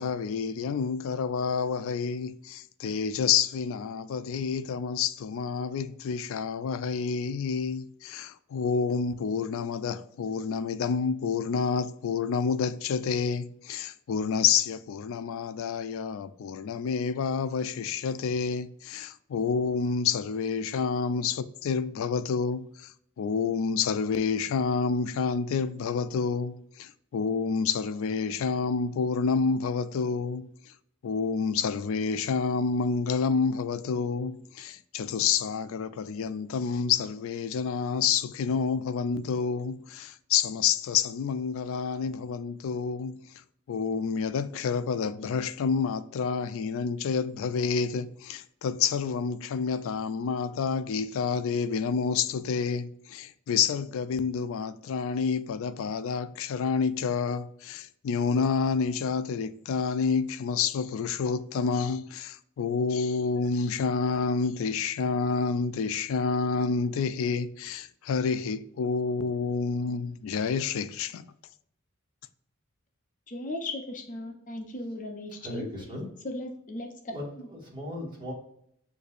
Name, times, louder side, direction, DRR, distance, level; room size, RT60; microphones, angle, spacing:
voice 1, 0.0-22.9 23.2-30.5 31.0-43.3 43.7-71.3, left 5 dB, 65° left, 0.3 m, -29 dB
voice 2, 73.3-75.7 76.2-77.5, left 1 dB, 40° left, 0.7 m, -37 dB
voice 3, 75.4-76.2 77.1-78.3, left 1 dB, 20° right, 1.7 m, -38 dB
6.5 x 2.7 x 2.5 m
head